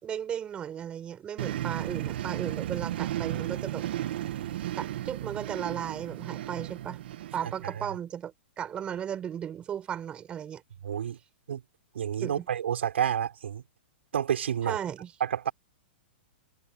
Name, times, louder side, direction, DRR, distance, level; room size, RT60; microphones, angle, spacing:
voice 1, 0.0-3.8 4.8-7.0 7.3-10.6 12.2-12.5 14.6-15.1, right 9 dB, 15° right, 6.0 m, -35 dB
sound 1, 1.4-7.8, right 12 dB, 60° right, 1.8 m, -34 dB
voice 2, 7.4-7.9 10.8-11.2 11.5-11.6 11.9-13.6 14.1-14.8 15.2-15.5, right 9 dB, 85° right, 5.5 m, -29 dB
hypercardioid pair, 160°, 6 cm